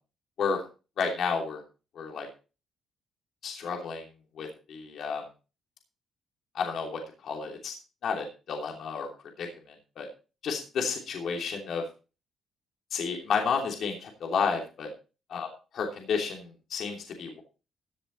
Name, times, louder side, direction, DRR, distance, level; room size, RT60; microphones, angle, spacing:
voice 1, 1.0-1.6 1.9-2.3 3.4-4.1 4.3-5.2 6.5-7.7 8.0-9.1 9.4-10.1 10.4-11.8 12.9-14.9 15.3-15.5 15.8-17.4, left 5 dB, 65° left, 1 dB, 3.1 m, -31 dB
15.5 x 7.9 x 4.2 m, 0.33 s
cardioid pair, 90°, 0 cm